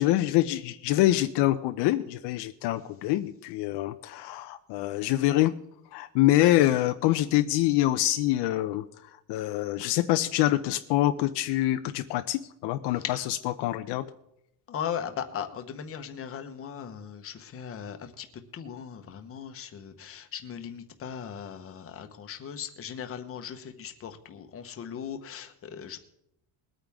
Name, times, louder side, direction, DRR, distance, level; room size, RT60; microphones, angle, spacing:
voice 1, 0.0-5.5 5.9-8.8 9.3-13.0 13.6-14.1, left 15 dB, 65° left, 8 dB, 0.7 m, -25 dB
voice 2, 13.0-13.3 14.7-26.0, left 8 dB, 30° left, 6 dB, 1.2 m, -38 dB
21.5 x 9.0 x 3.6 m, 0.79 s
cardioid pair, 155°, 43 cm